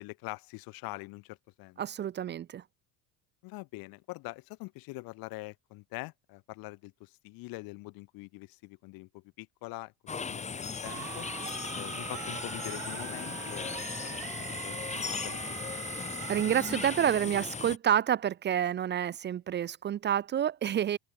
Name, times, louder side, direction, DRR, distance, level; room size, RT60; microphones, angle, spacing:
voice 1, 0.0-1.8 3.4-11.2 11.7-15.6, left 23 dB, 75° left, 2.5 m, -44 dB
voice 2, 1.8-2.6 16.3-21.0, right 10 dB, 30° right, 0.6 m, -28 dB
sound 1, 10.1-17.8, left 5 dB, 20° left, 2.3 m, -37 dB
sound 2, 10.8-17.0, right 26 dB, 80° right, 2.5 m, -42 dB
open air
cardioid pair, 150°, 36 cm